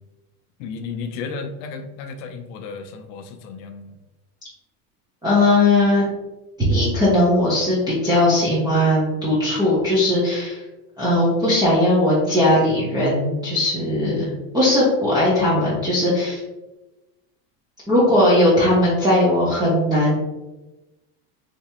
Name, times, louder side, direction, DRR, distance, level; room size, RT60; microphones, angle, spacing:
voice 1, 0.6-4.0, left 5 dB, 55° left, 6 dB, 0.6 m, -33 dB
voice 2, 5.2-6.0 6.6-10.6 11.0-16.4 17.9-20.2, left 1 dB, 10° right, -9 dB, 0.6 m, -18 dB
3.4 x 3.0 x 2.8 m, 1.0 s
supercardioid pair, 150°, 47 cm